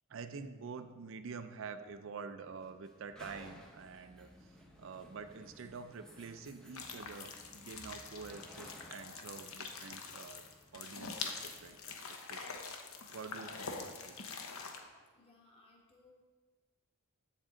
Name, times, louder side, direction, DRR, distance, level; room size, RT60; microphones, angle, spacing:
voice 1, 0.1-10.4 10.7-12.7 13.1-14.2, right 5 dB, 60° right, 10 dB, 0.4 m, -47 dB
sound 1, 1.4-11.8, equal, 5° left, 0.7 m, -58 dB
sound 2, 6.7-14.8, left 5 dB, 75° left, 0.8 m, -45 dB
voice 2, 15.1-16.1, left 3 dB, 25° left, -1 dB, 1.4 m, -64 dB
8.2 x 7.3 x 3.8 m, 1.5 s
head